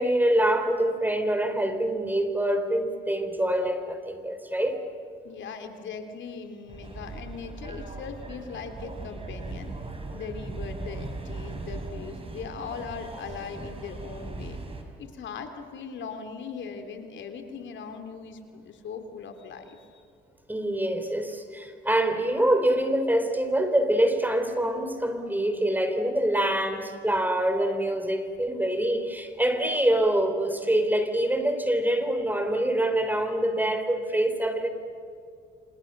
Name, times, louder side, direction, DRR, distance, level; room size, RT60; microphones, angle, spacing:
voice 1, 0.0-4.8 20.5-34.7, right 1 dB, 10° right, 8 dB, 3.3 m, -25 dB
voice 2, 5.2-9.7 10.1-14.6 15.0-20.0, left 5 dB, 70° left, 6 dB, 3.0 m, -39 dB
sound 1, 6.7-14.8, right 3 dB, 30° right, 4.6 m, -38 dB
28.0 x 27.0 x 6.7 m, 2.4 s
cardioid pair, 90°, 20 cm